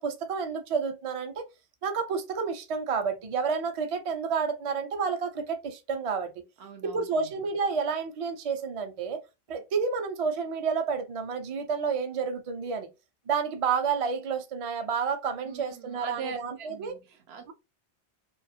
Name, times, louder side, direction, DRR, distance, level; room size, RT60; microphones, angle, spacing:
voice 1, 0.0-1.5 1.8-6.3 6.8-9.2 9.5-12.9 13.3-17.0, right 5 dB, 50° right, 0.4 m, -30 dB
voice 2, 6.6-7.4 15.4-17.5, right 7 dB, 75° right, 0.8 m, -42 dB
2.4 x 2.3 x 2.6 m
omnidirectional pair, 1.1 m